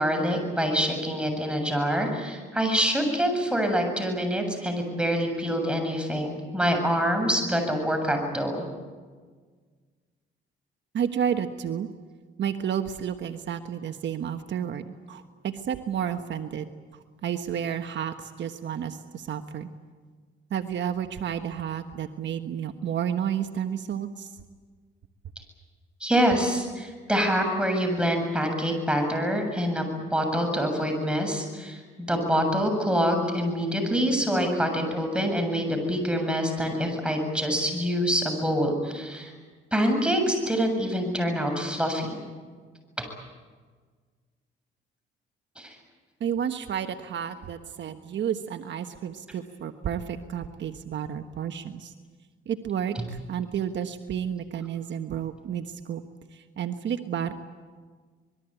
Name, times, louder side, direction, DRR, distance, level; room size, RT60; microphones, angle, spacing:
voice 1, 0.0-8.6 26.0-39.3 39.7-42.2 43.0-43.1 45.6-45.8 53.0-53.1, equal, 5° right, 4 dB, 7.5 m, -26 dB
voice 2, 10.9-11.9 12.4-16.7 17.2-19.7 20.5-24.3 46.2-51.9 52.5-56.0 56.3-57.3, right 8 dB, 65° right, 7 dB, 1.4 m, -31 dB
26.0 x 22.0 x 9.1 m, 1.5 s
cardioid pair, 90°, 20 cm